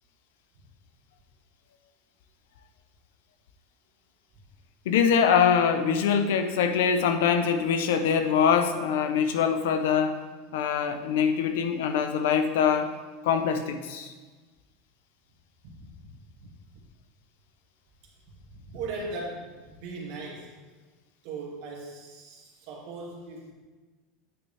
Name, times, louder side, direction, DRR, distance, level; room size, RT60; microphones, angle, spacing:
voice 1, 4.9-10.2 10.5-12.9 13.2-14.1, left 7 dB, 80° left, 8 dB, 0.7 m, -23 dB
voice 2, 15.6-16.1 16.4-16.5 18.5-20.5 21.2-23.5, right 3 dB, 50° right, -3 dB, 2.1 m, -39 dB
8.9 x 6.6 x 3.4 m, 1.3 s
supercardioid pair, 175°, 0 cm